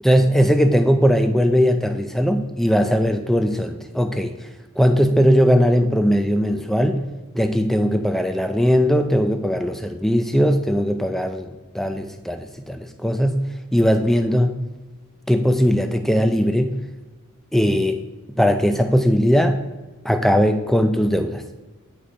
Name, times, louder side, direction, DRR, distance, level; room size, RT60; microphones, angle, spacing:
voice 1, 0.0-4.3 4.8-7.0 7.3-13.4 13.7-14.6 15.3-16.7 17.5-18.0 18.4-19.6 20.0-21.4, equal, ahead, 7 dB, 0.4 m, -19 dB
8.5 x 4.8 x 4.6 m, 1.2 s
head